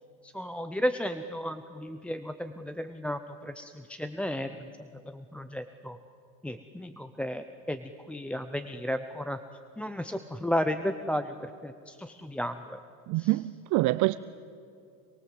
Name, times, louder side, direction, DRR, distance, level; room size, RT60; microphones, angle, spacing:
voice 1, 0.3-4.5 5.1-6.0 6.4-7.8 8.1-9.4 9.8-11.3 11.6-12.8 13.2-13.3, equal, 5° left, 7 dB, 0.6 m, -33 dB
voice 2, 13.1-14.1, right 20 dB, 45° right, 14 dB, 0.6 m, -26 dB
26.5 x 22.0 x 7.8 m, 2.5 s
supercardioid pair, 130°, 42 cm